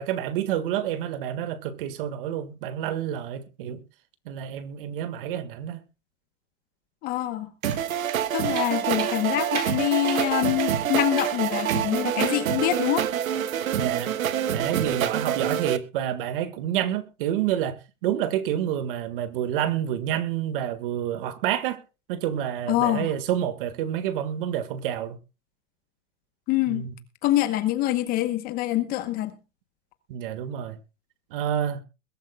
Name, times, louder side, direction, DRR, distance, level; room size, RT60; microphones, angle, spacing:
voice 1, 0.0-3.8 4.3-5.8 13.8-14.1 14.5-21.8 22.1-25.2 26.7-26.9 30.1-30.8 31.3-31.8, right 10 dB, 40° right, 1.7 m, -28 dB
voice 2, 7.0-7.5 8.3-13.1 22.7-23.1 26.5-26.9 27.2-29.3, left 14 dB, 20° left, 1.0 m, -25 dB
sound 1, 7.6-7.8 8.1-8.2 8.5-8.7 9.0-9.2 9.5-9.7 10.1-10.2 10.6-10.7 11.2-11.3 11.7-11.8 12.2-12.4, right 8 dB, 65° right, 4.4 m, -34 dB
sound 2, 7.6-15.8, right 10 dB, 90° right, 1.4 m, -26 dB
22.0 x 12.5 x 2.3 m
hypercardioid pair, 160°, 40 cm